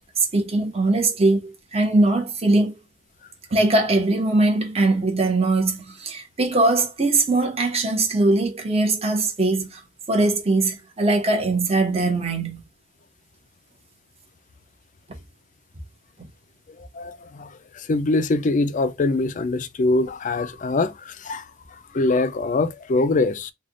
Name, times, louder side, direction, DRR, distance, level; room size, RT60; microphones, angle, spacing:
voice 1, 0.3-2.8 3.5-9.8 10.1-12.6, right 2 dB, 35° right, 1.0 m, -21 dB
voice 2, 16.9-23.5, left 2 dB, 45° left, 0.4 m, -23 dB
3.4 x 2.3 x 3.7 m
head